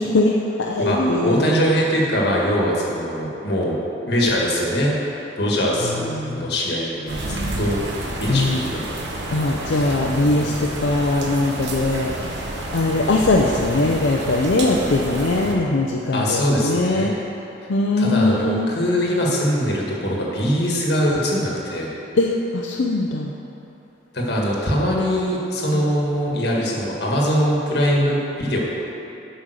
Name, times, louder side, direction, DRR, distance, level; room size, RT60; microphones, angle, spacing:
voice 1, 0.0-1.5 5.8-6.5 8.3-8.7 9.3-12.1 12.5-17.2 17.7-18.7 22.1-23.3 25.7-25.8, left 2 dB, 80° left, -1 dB, 0.6 m, -21 dB
voice 2, 0.8-3.7 4.1-4.9 5.4-7.8 8.2-8.8 9.7-9.9 10.3-10.9 16.1-17.1 18.0-21.9 24.1-28.6, equal, 60° left, -3 dB, 1.7 m, -22 dB
sound 1, 7.1-15.5, right 1 dB, 70° right, 1.1 m, -29 dB
8.7 x 5.2 x 6.6 m, 3.0 s
head